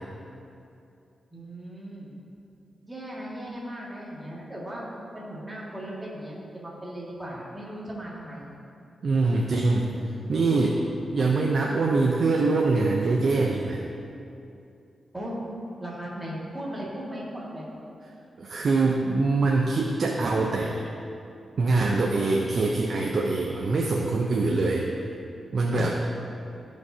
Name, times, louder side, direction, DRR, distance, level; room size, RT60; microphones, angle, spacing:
voice 1, 1.3-2.1 2.8-4.9 5.1-8.5 15.1-15.5 15.8-17.7, right 1 dB, 10° right, -6 dB, 1.9 m, -37 dB
voice 2, 9.0-9.9 10.3-10.8 11.1-13.8 18.4-20.8 21.6-24.9 25.5-26.0, right 3 dB, 50° right, -1 dB, 0.6 m, -24 dB
14.5 x 5.2 x 2.7 m, 2.7 s
wide cardioid pair, 130°, 0 cm